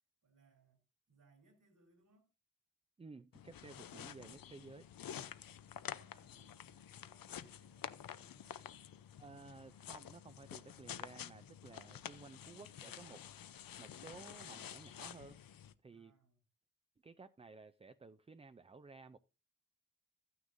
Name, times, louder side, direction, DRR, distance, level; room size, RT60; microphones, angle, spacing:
voice 1, 0.2-2.3 5.4-8.7 15.9-16.4, right 3 dB, 65° right, 3.4 m, -71 dB
voice 2, 3.0-4.9 9.2-13.3 13.8-15.4 15.8-16.1 17.0-19.2, right 4 dB, 20° right, 0.4 m, -55 dB
sound 1, 3.3-15.7, left 10 dB, 90° left, 0.7 m, -50 dB
13.5 x 9.5 x 2.6 m
wide cardioid pair, 110°, 33 cm